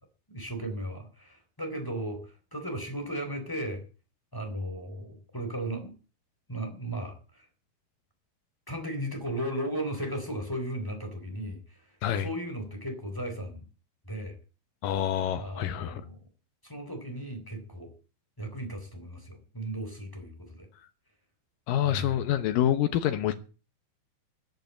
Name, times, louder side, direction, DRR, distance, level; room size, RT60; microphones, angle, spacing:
voice 1, 0.3-2.2 2.5-3.8 4.3-5.9 6.5-7.4 8.7-11.6 12.2-13.7 14.0-14.4 15.4-16.2 16.6-17.9 18.4-20.7 21.9-22.1, right 1 dB, 5° left, 2.7 m, -36 dB
voice 2, 14.8-16.0 21.7-23.3, left 11 dB, 85° left, 1.9 m, -27 dB
14.0 x 8.0 x 8.5 m
omnidirectional pair, 5.3 m